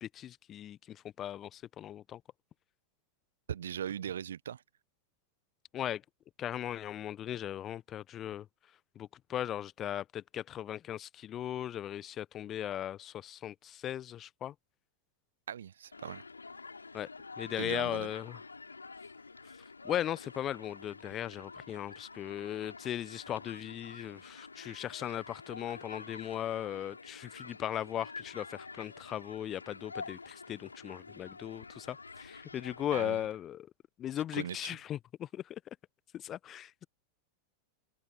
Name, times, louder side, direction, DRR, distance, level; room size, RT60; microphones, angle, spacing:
voice 1, 0.0-2.2 5.7-6.0 6.4-8.5 8.9-14.5 16.9-17.1 17.4-18.4 19.8-33.7 34.0-35.6 36.1-36.9, left 11 dB, 30° left, 1.0 m, -38 dB
voice 2, 3.5-4.6 15.5-16.2 17.6-18.1 32.9-33.2 34.3-34.6, right 9 dB, 65° right, 1.3 m, -39 dB
Human group actions, 15.9-33.3, left 4 dB, 80° left, 7.2 m, -48 dB
figure-of-eight pair, 90°, 0 cm